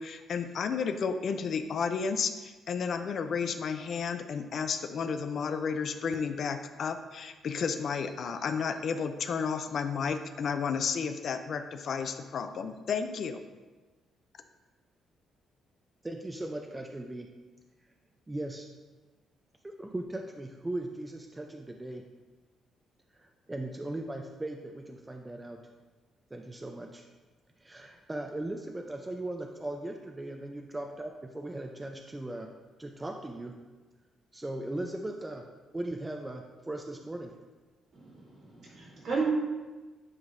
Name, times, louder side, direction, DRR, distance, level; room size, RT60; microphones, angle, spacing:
voice 1, 0.0-13.4, left 6 dB, 60° left, 8 dB, 0.4 m, -32 dB
voice 2, 16.0-17.3 18.3-18.7 19.6-22.0 23.1-25.6 26.3-27.1 27.6-32.5 32.8-33.6 34.3-35.4 35.7-37.3, right 1 dB, 15° right, 2 dB, 0.5 m, -38 dB
voice 3, 37.9-39.3, right 5 dB, 60° right, -4 dB, 1.9 m, -34 dB
9.7 x 3.8 x 2.6 m, 1.3 s
cardioid pair, 90°, 0 cm